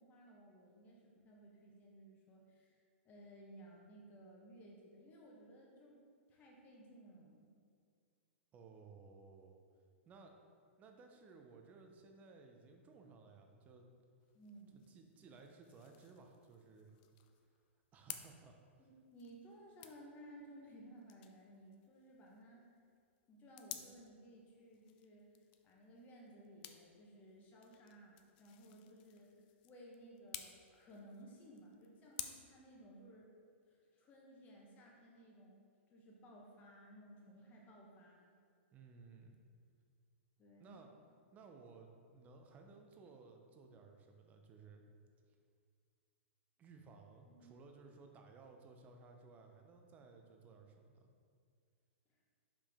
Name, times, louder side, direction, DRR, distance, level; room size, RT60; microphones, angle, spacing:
voice 1, 0.0-2.8 3.0-6.0 6.3-7.5 14.3-14.9 18.8-22.7 23.3-25.2 25.6-33.3 33.6-35.6 35.9-38.3 40.4-40.8 47.3-47.5 52.1-52.2, right 1 dB, 25° left, -2 dB, 1.1 m, -58 dB
voice 2, 8.5-9.5 10.0-10.4 10.8-13.9 14.7-16.9 17.9-18.6 38.7-39.4 40.6-40.9 41.3-44.8 46.6-51.1, right 4 dB, 20° right, 3 dB, 0.6 m, -59 dB
Natural Twig Stick Break Snap Various Multiple, 14.2-32.2, left 12 dB, 40° left, 0.4 m, -55 dB
5.5 x 4.9 x 3.5 m, 2.2 s
hypercardioid pair, 145°, 7 cm